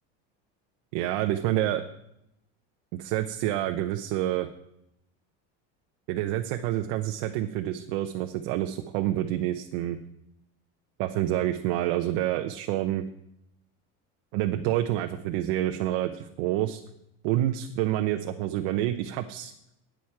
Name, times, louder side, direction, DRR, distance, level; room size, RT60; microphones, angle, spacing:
voice 1, 0.9-1.8 2.9-4.5 6.1-10.0 11.0-13.0 14.3-16.8 17.2-19.5, right 13 dB, 65° right, 6 dB, 0.8 m, -28 dB
11.5 x 9.2 x 4.7 m, 0.81 s
cardioid pair, 175°, 31 cm